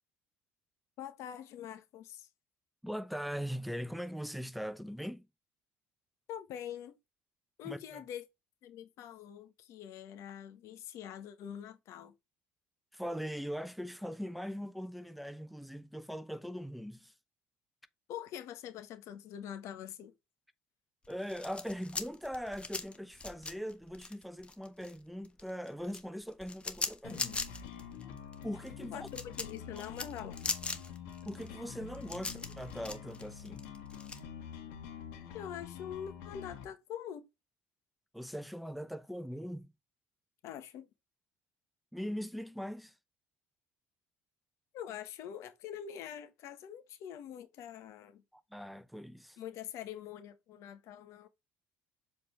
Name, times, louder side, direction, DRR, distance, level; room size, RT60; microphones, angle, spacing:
voice 1, 1.0-2.3 6.3-7.0 7.6-8.2 8.6-12.1 18.1-20.1 28.9-30.4 35.3-37.3 40.4-40.9 44.7-48.2 49.4-51.3, left 9 dB, 65° left, 1.3 m, -44 dB
voice 2, 2.8-5.3 7.6-7.8 12.9-17.1 21.1-27.4 28.4-29.1 29.7-29.9 31.3-33.6 38.1-39.7 41.9-42.9 48.3-49.4, equal, ahead, 0.7 m, -41 dB
sound 1, 21.0-25.0 25.2-34.2, left 3 dB, 20° left, 1.2 m, -40 dB
sound 2, 27.0-36.6, left 7 dB, 85° left, 1.9 m, -47 dB
7.1 x 4.2 x 3.2 m
supercardioid pair, 95°, 5 cm